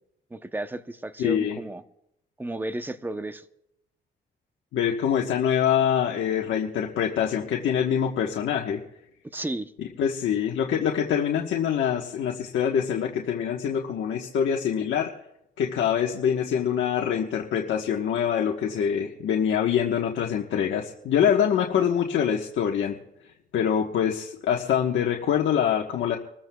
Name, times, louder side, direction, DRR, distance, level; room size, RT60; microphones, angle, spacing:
voice 1, 0.3-1.8 2.4-3.4 9.3-9.7, right 1 dB, 10° right, 0.8 m, -33 dB
voice 2, 1.2-1.6 4.7-8.8 9.8-15.1 15.6-23.0 23.5-26.2, left 8 dB, 75° left, 1.3 m, -25 dB
26.0 x 14.5 x 2.3 m
cardioid pair, 90°, 20 cm